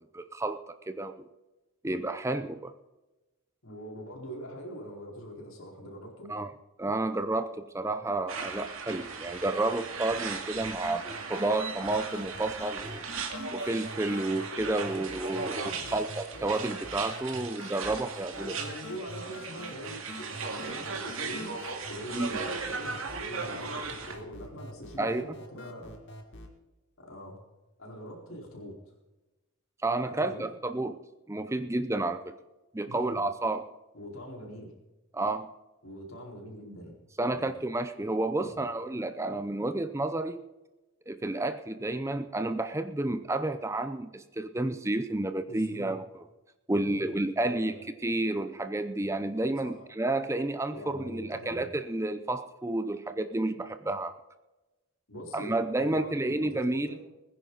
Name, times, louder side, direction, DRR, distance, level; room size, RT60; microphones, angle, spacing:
voice 1, 0.1-0.6 0.9-1.2 1.8-2.7 6.3-6.5 6.8-13.0 13.5-15.6 15.9-18.6 22.1-22.4 25.0-25.2 29.8-31.0 31.3-32.3 32.7-33.7 35.1-35.5 37.2-40.4 41.1-46.0 46.7-47.7 48.0-54.1 55.3-56.9, right 2 dB, 15° right, 9 dB, 0.6 m, -30 dB
voice 2, 3.6-6.3 15.4-16.0 18.4-21.6 21.9-25.9 27.0-27.4 27.8-28.8 30.1-30.5 32.8-33.2 33.9-34.7 35.8-37.0 37.3-37.4 38.4-38.7 45.5-45.9 46.7-47.8 49.6-49.8 50.7-51.7 55.1-57.0, equal, 70° left, 0 dB, 4.3 m, -43 dB
sound 1, 8.3-24.2, right 4 dB, 70° right, 2.2 m, -37 dB
sound 2, 10.6-26.6, equal, 55° left, 1.9 m, -46 dB
21.0 x 10.0 x 4.0 m, 1.1 s
head